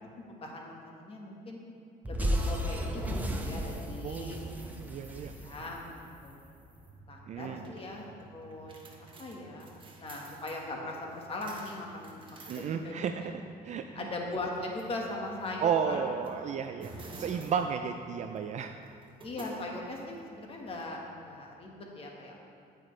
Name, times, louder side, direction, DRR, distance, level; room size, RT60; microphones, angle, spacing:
voice 1, 0.1-1.6 2.1-4.4 5.2-6.4 7.1-8.8 9.2-9.7 10.0-13.3 13.9-16.0 17.3-17.4 19.2-22.4, left 2 dB, 35° left, -1 dB, 1.5 m, -40 dB
sound 1, 2.0-6.4, equal, 10° right, 0.8 m, -34 dB
voice 2, 4.0-5.3 7.3-7.7 12.5-13.3 13.6-14.1 15.6-18.7, right 7 dB, 45° right, 6 dB, 0.4 m, -33 dB
sound 2, 6.8-21.5, right 3 dB, 30° right, 1.2 m, -52 dB
9.3 x 8.8 x 3.3 m, 2.6 s
cardioid pair, 110°, 17 cm